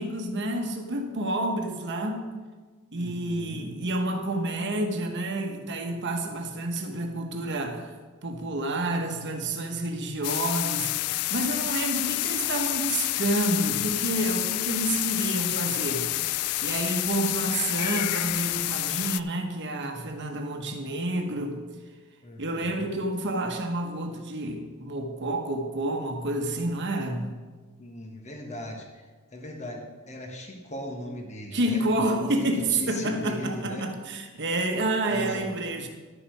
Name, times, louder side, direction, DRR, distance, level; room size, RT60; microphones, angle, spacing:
voice 1, 0.0-2.3 2.9-7.9 8.2-21.6 22.4-27.3 31.5-35.9, right 1 dB, 55° right, 4 dB, 1.2 m, -29 dB
voice 2, 2.9-3.7 22.2-23.0 27.8-29.0 29.3-33.9 35.1-35.5, left 1 dB, 35° left, 2 dB, 1.4 m, -38 dB
sound 1, 10.2-19.2, left 16 dB, 85° left, 0.3 m, -28 dB
11.5 x 7.0 x 4.7 m, 1.4 s
head